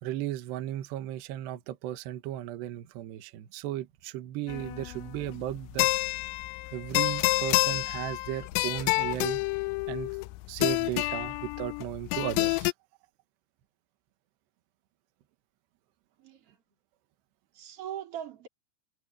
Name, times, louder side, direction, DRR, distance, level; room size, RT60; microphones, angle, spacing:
voice 1, 0.0-5.9 6.7-9.4 9.9-10.1 10.5-12.7, right 13 dB, 70° right, 3.2 m, -35 dB
sound 1, 4.5-12.7, left 23 dB, 85° left, 2.6 m, -29 dB
voice 2, 16.2-16.6 17.5-18.5, right 10 dB, 30° right, 4.3 m, -40 dB
omnidirectional pair, 5.7 m